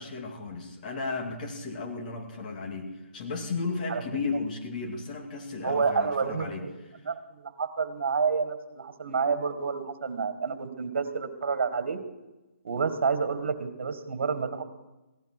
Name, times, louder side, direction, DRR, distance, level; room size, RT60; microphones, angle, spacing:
voice 1, 0.0-6.6, left 4 dB, 40° left, 2 dB, 2.5 m, -34 dB
voice 2, 5.6-6.7 7.1-12.0 12.6-14.6, right 5 dB, 60° right, 10 dB, 2.1 m, -29 dB
17.0 x 12.5 x 6.2 m, 1.1 s
hypercardioid pair, 160°, 7 cm